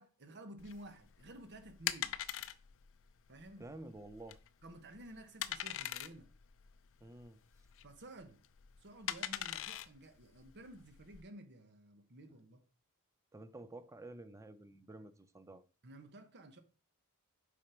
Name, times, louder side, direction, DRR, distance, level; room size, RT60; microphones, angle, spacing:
voice 1, 0.0-2.2 3.3-3.7 4.6-6.3 7.8-8.4 8.8-12.6 15.8-16.6, right 1 dB, 50° right, 1.2 m, -53 dB
sound 1, 0.6-11.2, left 12 dB, 60° left, 0.5 m, -43 dB
voice 2, 3.6-4.4 7.0-7.4 13.3-15.6, right 2 dB, 15° right, 0.6 m, -51 dB
7.4 x 5.3 x 4.4 m
head